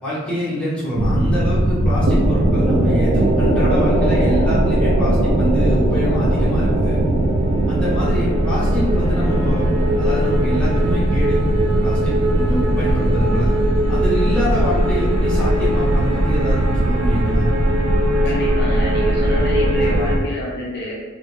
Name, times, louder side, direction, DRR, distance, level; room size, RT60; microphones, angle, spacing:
voice 1, 0.0-7.0 7.7-9.7 10.0-11.4 11.8-13.5 13.9-17.5, equal, 5° left, -11 dB, 0.8 m, -25 dB
sound 1, 0.9-20.2, right 1 dB, 65° right, 0.3 m, -18 dB
voice 2, 18.2-20.9, left 1 dB, 50° left, -4 dB, 0.4 m, -28 dB
2.2 x 2.0 x 2.9 m, 1.3 s
head